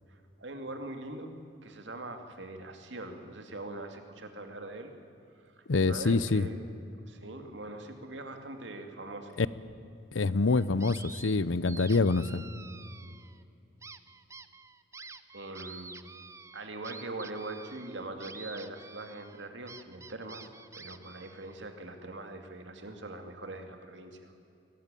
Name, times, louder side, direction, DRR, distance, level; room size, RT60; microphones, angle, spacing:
voice 1, 0.1-1.3 1.6-4.9 5.4-6.6 7.1-9.4 15.3-16.0 16.5-20.5 20.7-24.3, right 2 dB, 70° right, 5 dB, 2.5 m, -42 dB
voice 2, 5.7-6.5 9.4-9.5 10.1-12.4, left 3 dB, 90° left, 17 dB, 0.7 m, -26 dB
sound 1, 10.5-11.4 11.7-13.4 13.8-21.6, right 4 dB, 15° right, 0.6 m, -49 dB
22.0 x 18.5 x 9.1 m, 2.6 s
head